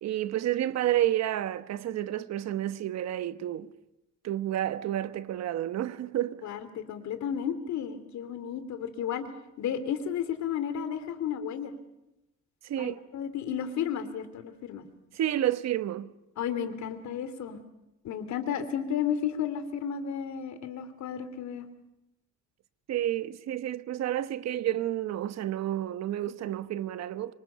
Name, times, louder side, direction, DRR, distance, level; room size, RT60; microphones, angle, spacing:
voice 1, 0.0-3.7 4.2-6.4 12.6-13.0 15.1-16.1 22.9-27.4, right 12 dB, 60° right, 1.1 m, -30 dB
voice 2, 6.4-9.3 9.6-11.7 12.8-14.8 16.4-17.6 18.0-21.7, left 8 dB, 70° left, 2.8 m, -33 dB
26.0 x 24.0 x 6.8 m
cardioid pair, 130°, 29 cm